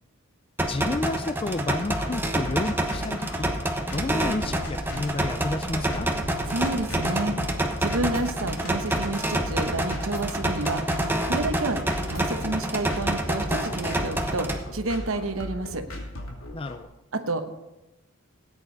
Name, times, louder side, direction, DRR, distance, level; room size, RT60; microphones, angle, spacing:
sound 1, 0.6-14.6, right 1 dB, 10° right, 1.0 m, -28 dB
voice 1, 0.7-3.5 3.9-6.1 16.5-16.9, left 2 dB, 25° left, 10 dB, 0.4 m, -31 dB
sound 2, 1.4-16.8, left 1 dB, 90° left, 2.7 m, -37 dB
voice 2, 6.5-7.4 7.8-10.8 11.2-11.8 12.1-15.8 17.1-17.4, right 2 dB, 80° right, 7 dB, 1.1 m, -29 dB
sound 3, 10.9-15.5, equal, 5° left, 4.7 m, -46 dB
18.0 x 9.1 x 4.0 m, 0.95 s
head